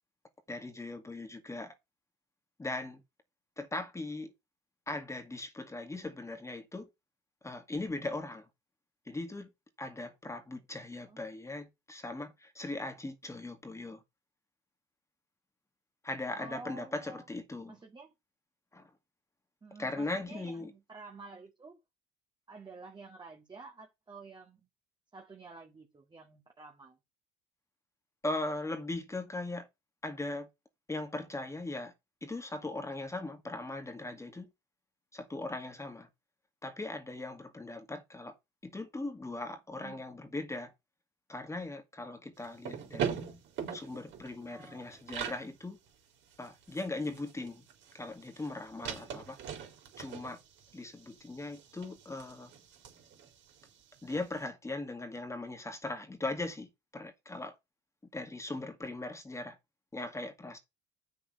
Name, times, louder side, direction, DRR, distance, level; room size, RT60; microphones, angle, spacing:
voice 1, 0.5-1.8 2.6-3.0 3.6-4.3 4.9-6.9 7.4-8.5 9.1-9.5 9.8-14.0 16.0-17.8 18.7-18.9 19.8-20.7 28.2-29.7 30.0-30.5 30.9-31.9 32.2-34.5 35.1-36.1 36.6-38.3 38.6-40.7 41.3-43.2 43.7-45.8 46.4-47.6 47.9-49.4 50.0-50.4 50.7-52.5 54.0-57.5 58.1-59.6 59.9-60.6, left 2 dB, 15° left, 2.0 m, -39 dB
voice 2, 16.3-17.3 17.7-18.1 19.6-21.8 22.5-24.7 25.1-27.0 39.8-40.1 44.5-45.1, right 3 dB, 20° right, 2.0 m, -50 dB
sound 1, 42.4-45.5 45.9-46.0 46.2-54.2, right 8 dB, 65° right, 3.9 m, -42 dB
7.7 x 6.6 x 5.6 m
supercardioid pair, 100°, 21 cm